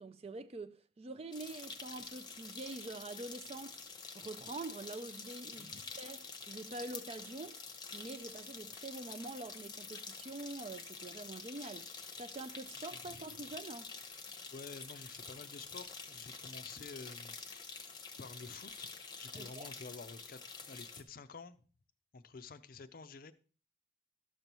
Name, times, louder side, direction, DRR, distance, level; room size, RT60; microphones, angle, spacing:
voice 1, 0.0-3.8 4.1-7.6 7.9-11.9 12.2-13.9 19.3-19.7, right 2 dB, 30° right, 0.3 m, -46 dB
sound 1, 1.3-21.0, left 5 dB, 20° left, 0.8 m, -48 dB
voice 2, 5.5-5.9 12.9-13.3 14.5-17.9 18.2-18.9 19.2-21.6 22.1-23.3, left 4 dB, 45° left, 0.5 m, -50 dB
12.5 x 6.8 x 2.9 m
head